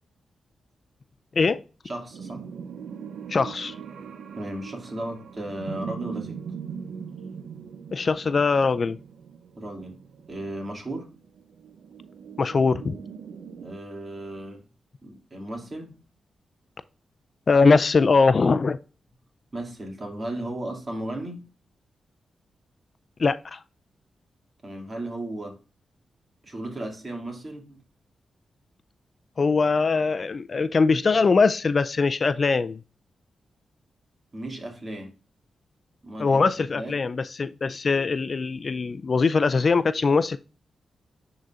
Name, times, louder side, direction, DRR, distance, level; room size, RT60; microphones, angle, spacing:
voice 1, 1.8-2.5 4.4-6.4 9.6-10.0 10.3-11.1 13.6-14.6 15.0-16.0 19.5-21.5 24.6-25.6 26.4-27.8 34.3-35.1 36.0-36.5 36.8-37.0, right 1 dB, 40° right, 2.2 m, -35 dB
sound 1, 2.1-13.7, right 6 dB, 80° right, 0.6 m, -40 dB
voice 2, 3.3-3.7 7.9-9.0 12.4-12.9 17.5-18.8 23.2-23.6 29.4-32.8 36.2-40.4, left 4 dB, 50° left, 0.3 m, -21 dB
10.5 x 3.9 x 2.4 m
cardioid pair, 55°, 0 cm